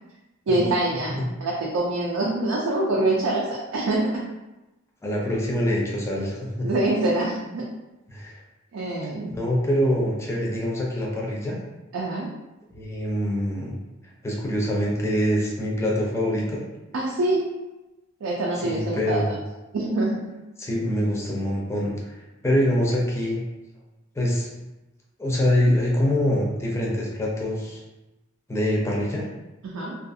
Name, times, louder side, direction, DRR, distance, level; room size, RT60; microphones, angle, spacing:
voice 1, 0.5-4.3 6.6-7.7 8.7-9.3 11.9-12.3 16.9-17.5 18.2-19.2 19.7-20.2 29.6-30.0, right 2 dB, 85° right, -3 dB, 0.4 m, -25 dB
voice 2, 5.0-6.7 8.1-8.4 9.3-11.6 12.7-13.8 14.2-16.6 18.6-19.4 20.6-23.4 24.1-24.5 25.2-27.8 28.5-29.2, equal, 15° left, -3 dB, 0.4 m, -24 dB
2.5 x 2.3 x 2.6 m, 1.0 s
head